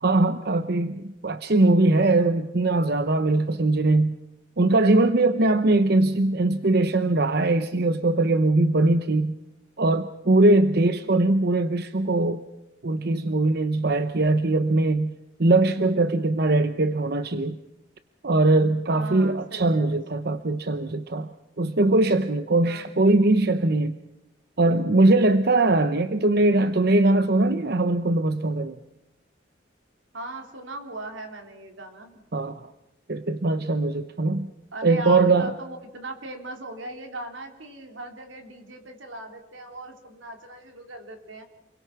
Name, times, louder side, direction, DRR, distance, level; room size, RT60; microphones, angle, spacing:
voice 1, 0.0-4.2 4.6-9.4 9.8-12.4 12.8-15.1 15.4-17.6 18.2-21.3 21.6-24.0 24.6-28.8 32.3-32.7 33.1-34.5 34.8-35.5, right 2 dB, 55° right, 10 dB, 0.8 m, -21 dB
voice 2, 18.9-20.0 22.6-23.0 30.1-32.2 34.7-41.4, right 1 dB, 85° right, 4 dB, 3.5 m, -38 dB
28.5 x 22.5 x 6.0 m, 0.90 s
head